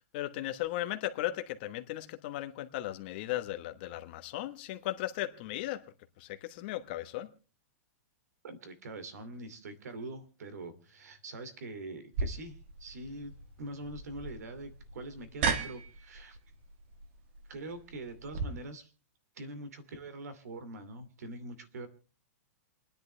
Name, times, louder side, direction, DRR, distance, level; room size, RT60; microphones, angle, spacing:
voice 1, 0.0-5.8 6.2-7.3, left 14 dB, 35° left, 1.1 m, -36 dB
voice 2, 8.4-13.3 13.6-16.4 17.5-18.9 19.3-21.9, right 2 dB, 85° right, 2.5 m, -44 dB
sound 1, 12.1-18.4, right 5 dB, 45° right, 1.5 m, -37 dB
28.0 x 10.5 x 3.3 m
supercardioid pair, 170°, 8 cm